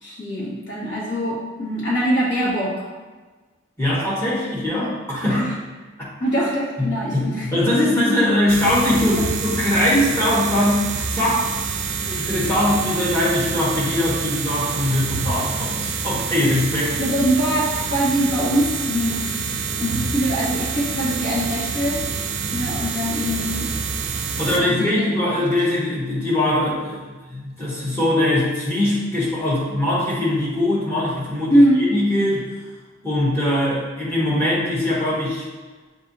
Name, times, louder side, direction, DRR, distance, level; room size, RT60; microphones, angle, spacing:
voice 1, 0.0-2.8 5.3-5.5 6.2-7.5 9.2-9.3 17.0-19.5 19.8-22.0 22.5-23.7 24.5-25.1 31.5-31.9, equal, 60° left, -6 dB, 1.4 m, -22 dB
voice 2, 3.8-5.4 6.8-10.8 11.1-11.4 12.1-17.0 24.4-32.5 33.0-35.5, left 1 dB, 10° left, -8 dB, 1.1 m, -21 dB
sound 1, 8.5-24.6, right 5 dB, 60° right, 0.4 m, -27 dB
6.5 x 2.6 x 2.7 m, 1.3 s
head